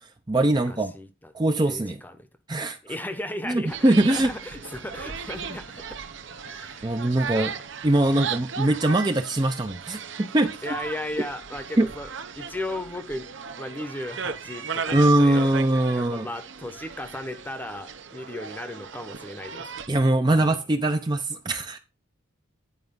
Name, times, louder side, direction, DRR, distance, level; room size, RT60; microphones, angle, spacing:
voice 1, 0.0-0.9 1.3-2.0 2.5-2.8 3.4-4.3 6.8-7.5 7.8-10.6 11.8-11.9 14.9-16.3 19.9-21.8, right 1 dB, 20° right, 0.5 m, -22 dB
voice 2, 0.5-1.3 1.7-2.3 2.9-6.0 6.4-7.6 10.6-12.1 12.4-13.3 13.6-15.5 15.9-19.7 20.3-20.6, left 1 dB, 10° left, 0.8 m, -36 dB
sound 1, 3.7-19.9, right 6 dB, 65° right, 0.9 m, -36 dB
9.9 x 4.8 x 5.2 m
head